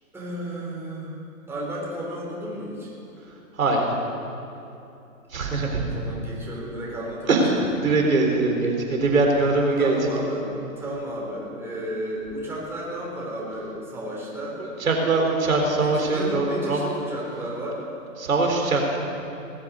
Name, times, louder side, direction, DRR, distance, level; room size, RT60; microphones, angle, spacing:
voice 1, 0.1-1.1 1.5-2.9 5.7-7.6 9.3-9.5 9.8-10.5 10.8-14.6 15.7-17.8, right 1 dB, 5° right, -6 dB, 4.0 m, -33 dB
voice 2, 5.3-5.8 7.3-7.5 7.8-10.0 14.9-16.8 18.2-19.0, right 3 dB, 70° right, 1 dB, 4.0 m, -22 dB
20.0 x 8.1 x 8.3 m, 2.8 s
hypercardioid pair, 135°, 42 cm